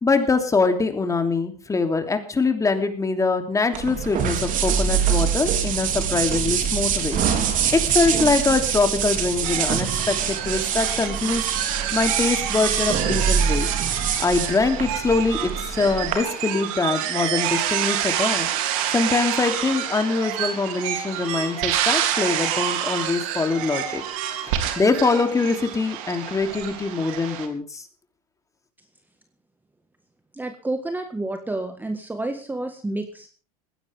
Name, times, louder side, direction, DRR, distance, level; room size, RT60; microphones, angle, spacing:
voice 1, 0.0-7.2 7.9-11.5 11.9-13.7 14.2-18.5 18.9-24.0 24.5-27.9, left 4 dB, 15° left, 6 dB, 3.1 m, -23 dB
sound 1, 3.7-16.2, right 8 dB, 45° right, 3.6 m, -24 dB
sound 2, 9.4-27.5, right 10 dB, 65° right, 3.0 m, -28 dB
voice 2, 30.3-33.3, right 2 dB, 10° right, 7 dB, 1.7 m, -29 dB
20.0 x 16.5 x 3.6 m, 0.38 s
hypercardioid pair, 90°, 19 cm